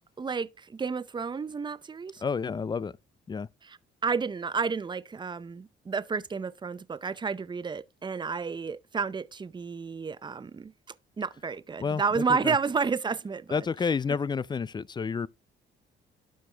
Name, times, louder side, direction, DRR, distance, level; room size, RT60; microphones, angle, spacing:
voice 1, 0.2-2.2 3.6-3.8 4.0-10.7 11.2-13.6, right 5 dB, 25° right, 0.6 m, -31 dB
voice 2, 2.2-2.9 3.3-3.5 11.8-12.6 13.5-15.3, left 5 dB, 20° left, 0.3 m, -30 dB
12.0 x 4.8 x 3.3 m
cardioid pair, 90°, 20 cm